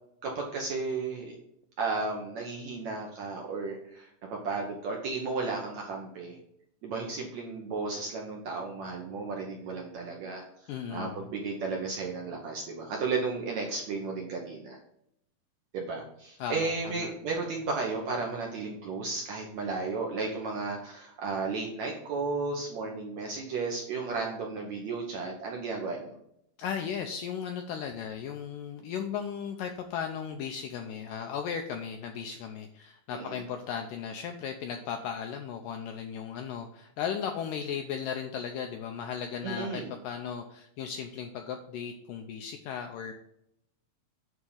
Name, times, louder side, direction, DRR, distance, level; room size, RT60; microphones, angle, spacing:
voice 1, 0.2-1.3 1.8-6.4 6.8-10.4 10.9-14.8 15.7-26.1 33.1-33.4 39.4-39.9, right 4 dB, 65° right, 0 dB, 1.8 m, -34 dB
voice 2, 10.7-11.3 16.4-17.1 26.6-43.1, left 7 dB, 80° left, 4 dB, 2.0 m, -36 dB
9.5 x 3.7 x 6.9 m, 0.76 s
omnidirectional pair, 4.6 m